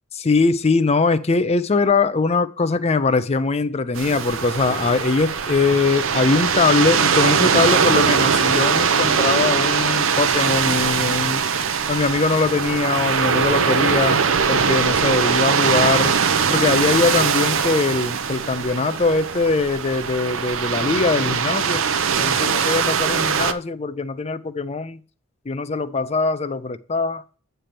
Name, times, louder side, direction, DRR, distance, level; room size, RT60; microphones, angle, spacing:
voice 1, 0.1-11.4 11.9-14.2 14.5-16.2 16.5-21.8 22.2-25.0 25.5-27.2, left 4 dB, 30° left, 0.5 m, -21 dB
sound 1, 4.0-23.5, right 6 dB, 75° right, 0.7 m, -21 dB
8.8 x 3.4 x 5.9 m
head